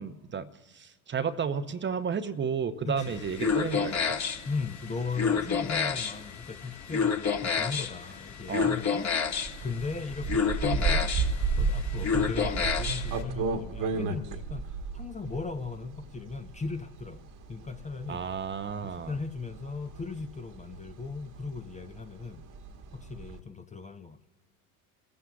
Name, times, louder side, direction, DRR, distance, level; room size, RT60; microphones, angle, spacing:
voice 1, 0.0-4.2 8.5-8.7 18.1-19.1, right 6 dB, 25° right, 0.7 m, -32 dB
voice 2, 2.9-3.2 4.5-9.3 9.6-11.1 11.6-14.7 14.9-18.2 18.8-22.4 22.9-24.3, left 4 dB, 15° left, 0.7 m, -37 dB
sound 1, 3.0-13.2, left 6 dB, 35° left, 1.7 m, -30 dB
sound 2, 9.3-23.4, right 4 dB, 45° right, 1.4 m, -33 dB
29.5 x 15.0 x 2.4 m
hypercardioid pair, 70°, 46 cm